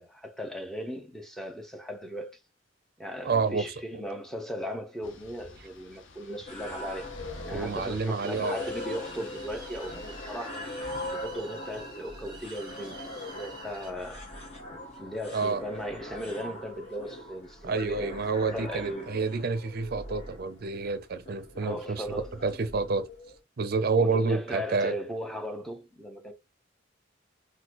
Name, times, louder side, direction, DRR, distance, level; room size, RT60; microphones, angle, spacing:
voice 1, 0.0-2.4 3.0-7.1 7.5-10.6 11.1-14.3 14.7-19.1 21.6-22.3 24.0-26.3, equal, ahead, 0.6 m, -37 dB
voice 2, 3.2-4.0 7.5-8.6 15.3-15.6 17.6-23.1 23.6-24.9, right 4 dB, 50° right, 0.5 m, -29 dB
sound 1, 5.0-10.5, left 3 dB, 75° left, 0.6 m, -50 dB
sound 2, 6.5-23.4, left 1 dB, 35° left, 1.1 m, -41 dB
sound 3, 8.2-13.9, right 3 dB, 20° right, 0.9 m, -49 dB
3.8 x 2.2 x 2.9 m
head